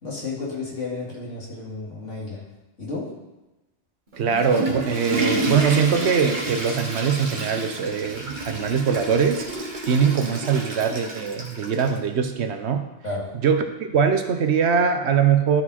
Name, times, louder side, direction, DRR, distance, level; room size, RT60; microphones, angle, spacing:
voice 1, 0.0-2.4 2.8-3.1 13.0-13.3, left 3 dB, 85° left, -4 dB, 2.6 m, -32 dB
Water / Toilet flush, 4.1-12.0, right 2 dB, 45° right, 1.4 m, -30 dB
voice 2, 4.2-9.4 9.9-12.8 13.4-13.6 13.9-15.6, right 6 dB, 65° right, 7 dB, 1.0 m, -22 dB
13.0 x 4.7 x 4.2 m, 1.0 s
omnidirectional pair, 1.2 m